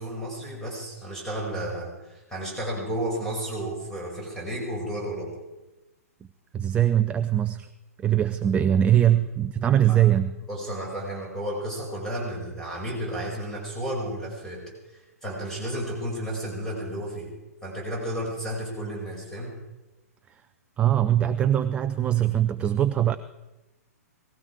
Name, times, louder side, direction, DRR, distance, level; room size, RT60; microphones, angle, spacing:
voice 1, 0.0-5.3 9.1-9.2 9.9-10.0 10.5-17.3 17.6-19.6, right 1 dB, 5° left, -3 dB, 5.6 m, -32 dB
voice 2, 6.5-7.7 8.0-10.3 20.8-23.2, right 11 dB, 15° right, 11 dB, 0.4 m, -22 dB
19.0 x 16.0 x 4.7 m, 1.0 s
figure-of-eight pair, 115°, 9 cm